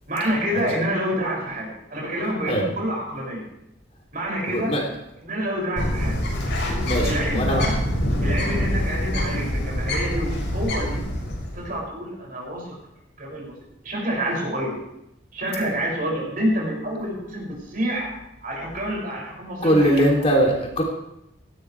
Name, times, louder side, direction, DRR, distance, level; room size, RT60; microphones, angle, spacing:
voice 1, 0.1-3.4 4.1-4.7 5.2-6.2 7.0-7.7 8.2-11.0 11.5-12.7 13.2-13.5 13.8-14.7 15.3-18.1 18.4-20.1, equal, 45° right, -3 dB, 7.0 m, -27 dB
voice 2, 4.5-4.9 6.9-7.6 19.6-20.8, equal, 35° left, -1 dB, 3.3 m, -21 dB
Bird, 5.8-11.7, equal, 70° left, 7.5 m, -25 dB
18.0 x 15.5 x 3.5 m, 0.80 s
head